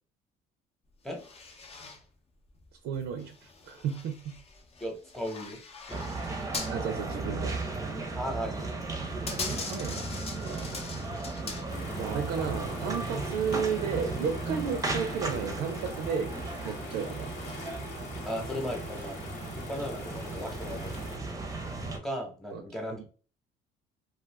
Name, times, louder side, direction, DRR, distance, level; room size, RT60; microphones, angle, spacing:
sound 1, 1.1-2.0 2.5-6.8 7.1-7.2 8.0-8.4 8.8-12.0 12.5-12.8, left 4 dB, 35° left, 0.6 m, -41 dB
voice 1, 2.8-4.3 6.7-7.6 9.5-10.0 10.4-10.7 12.0-16.3 16.6-17.3 22.5-22.6 22.9-23.1, right 7 dB, 80° right, 6 dB, 0.5 m, -33 dB
voice 2, 4.8-5.6 5.9-6.0 8.1-8.9 18.2-19.2 19.5-21.4 21.9-23.1, equal, ahead, 1 dB, 0.9 m, -36 dB
sound 2, 5.9-22.0, right 3 dB, 20° right, 0.6 m, -36 dB
sound 3, 11.7-21.2, left 3 dB, 85° left, 1.0 m, -44 dB
2.4 x 2.4 x 3.4 m, 0.38 s
cardioid pair, 110°, 17 cm